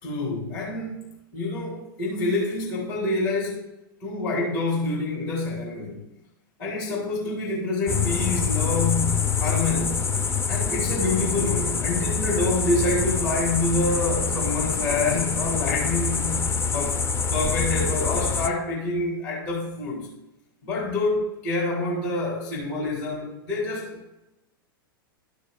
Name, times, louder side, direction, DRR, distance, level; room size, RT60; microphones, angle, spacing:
voice 1, 0.0-3.7 4.0-6.0 6.6-10.0 10.5-16.4 16.7-20.1 20.6-24.0, left 2 dB, 60° left, -4 dB, 3.0 m, -27 dB
sound 1, 7.9-18.5, left 5 dB, 20° left, 0.5 m, -25 dB
13.5 x 6.5 x 2.3 m, 0.93 s
hypercardioid pair, 105°, 12 cm